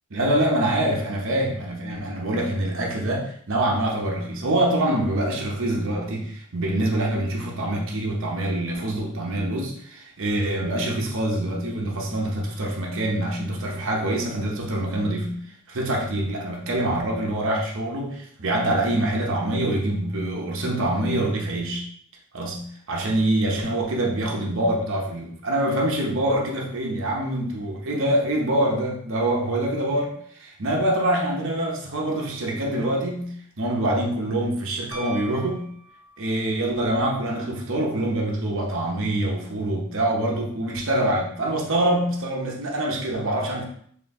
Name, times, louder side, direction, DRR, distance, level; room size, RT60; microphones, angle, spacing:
voice 1, 0.1-15.3 15.7-21.8 22.3-35.7 36.2-43.6, right 1 dB, 60° right, -1 dB, 0.9 m, -25 dB
Piano, 34.9-36.5 38.8-38.9, right 1 dB, 55° left, 1.4 m, -40 dB
4.4 x 2.9 x 3.5 m, 0.63 s
head